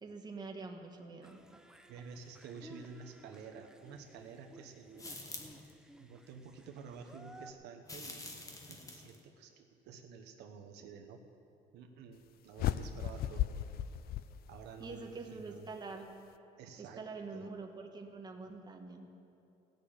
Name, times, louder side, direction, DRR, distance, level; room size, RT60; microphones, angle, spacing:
voice 1, 0.0-1.4 14.8-16.1 16.8-19.1, right 3 dB, 25° right, 2 dB, 1.4 m, -45 dB
sound 1, 1.2-7.5, right 1 dB, 5° right, 0.6 m, -57 dB
voice 2, 1.9-5.2 6.0-11.2 11.7-13.5 14.5-15.7 16.6-17.0 17.3-17.5, right 6 dB, 85° right, 4 dB, 1.2 m, -51 dB
sound 2, 5.0-5.7 7.8-9.2, left 2 dB, 20° left, 1.4 m, -47 dB
sound 3, 12.6-14.9, left 12 dB, 65° left, 0.5 m, -36 dB
15.5 x 6.7 x 8.9 m, 2.7 s
cardioid pair, 110°, 17 cm